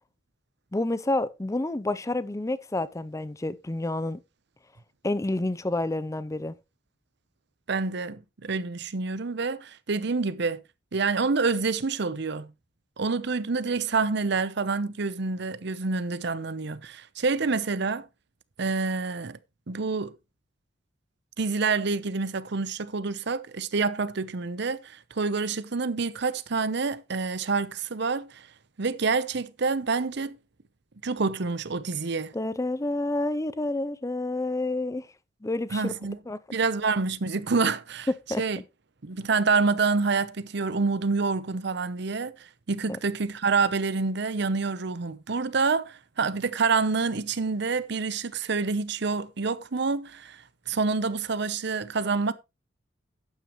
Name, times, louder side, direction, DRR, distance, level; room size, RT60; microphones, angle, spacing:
voice 1, 0.7-4.2 5.0-6.6 32.3-35.1 35.4-35.9 36.3-36.4 38.3-38.4 42.9-43.0, left 2 dB, 15° left, 0.5 m, -29 dB
voice 2, 7.7-10.6 10.9-12.5 13.0-18.1 18.6-19.4 19.7-20.2 21.4-28.5 28.8-30.4 31.0-32.3 35.7-36.2 36.5-38.1 38.4-38.6 39.0-52.3, right 4 dB, 65° right, 0.8 m, -27 dB
12.5 x 9.1 x 3.1 m
head